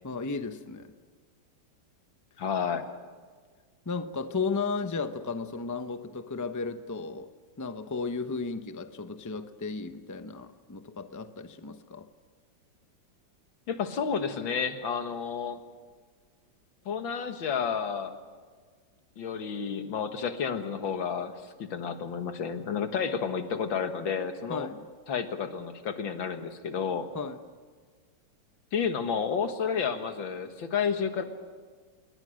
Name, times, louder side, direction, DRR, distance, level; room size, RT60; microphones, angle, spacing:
voice 1, 0.0-0.9 3.9-7.3 7.6-12.1 24.5-24.8 27.1-27.4, left 4 dB, 20° left, 0.5 m, -34 dB
voice 2, 2.4-2.9 13.7-15.6 16.9-18.2 19.2-21.3 21.6-24.7 25.1-27.1 28.7-31.2, left 6 dB, 85° left, 2.3 m, -31 dB
27.5 x 22.0 x 6.5 m
omnidirectional pair, 2.0 m